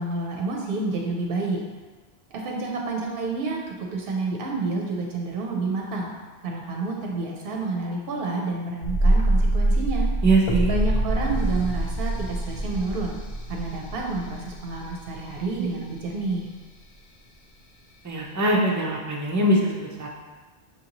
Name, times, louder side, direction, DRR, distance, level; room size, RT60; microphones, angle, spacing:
voice 1, 0.0-1.6 2.3-6.1 6.4-10.1 10.7-13.2 13.5-16.5, right 3 dB, 65° right, -1 dB, 0.7 m, -29 dB
sound 1, 8.8-15.6 15.9-16.0, right 1 dB, 45° left, 0.4 m, -25 dB
voice 2, 10.2-10.8 18.0-20.1, right 1 dB, 30° right, -1 dB, 0.3 m, -22 dB
5.8 x 2.6 x 2.9 m, 1.3 s
omnidirectional pair, 1.1 m